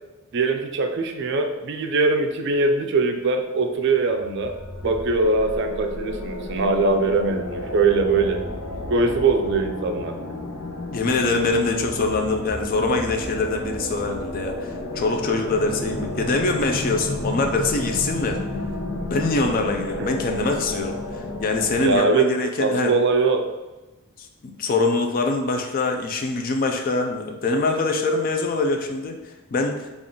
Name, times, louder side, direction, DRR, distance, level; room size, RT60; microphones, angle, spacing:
voice 1, 0.3-4.6 4.8-8.4 8.9-10.2 20.0-20.1 21.8-23.4, right 3 dB, 50° right, 5 dB, 0.4 m, -22 dB
sound 1, 3.9-22.0, left 1 dB, 85° left, 0.6 m, -32 dB
voice 2, 10.9-18.4 19.0-22.9 24.2-24.3 24.6-29.9, left 3 dB, 40° left, 3 dB, 0.3 m, -24 dB
3.6 x 2.4 x 3.7 m, 1.1 s
head